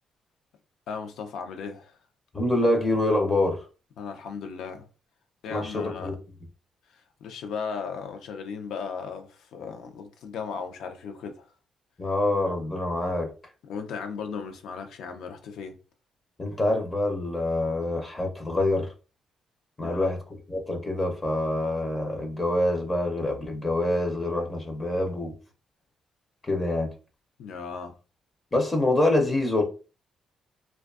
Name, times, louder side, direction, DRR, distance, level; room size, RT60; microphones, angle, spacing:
voice 1, 0.9-2.0 4.0-4.9 5.4-6.1 7.2-11.5 13.7-15.8 19.8-20.1 27.4-27.9, left 6 dB, 85° left, 0.5 m, -36 dB
voice 2, 2.3-3.6 5.5-6.2 12.0-13.3 16.4-18.9 19.8-20.2 20.5-25.3 26.4-26.9 28.5-29.6, left 1 dB, 20° left, 0.5 m, -26 dB
2.5 x 2.2 x 2.3 m
cardioid pair, 130°, 0 cm